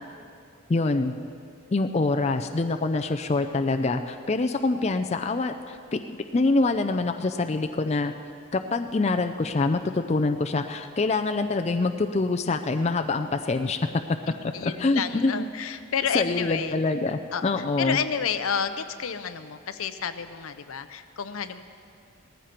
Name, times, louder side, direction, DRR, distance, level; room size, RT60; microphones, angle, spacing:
voice 1, 0.7-1.2 1.7-8.1 8.5-13.8 14.6-15.5 16.1-18.0, left 3 dB, 30° left, 6 dB, 0.4 m, -25 dB
voice 2, 14.3-16.8 17.3-21.6, left 7 dB, 80° left, 11 dB, 0.6 m, -30 dB
18.5 x 14.5 x 4.4 m, 2.4 s
head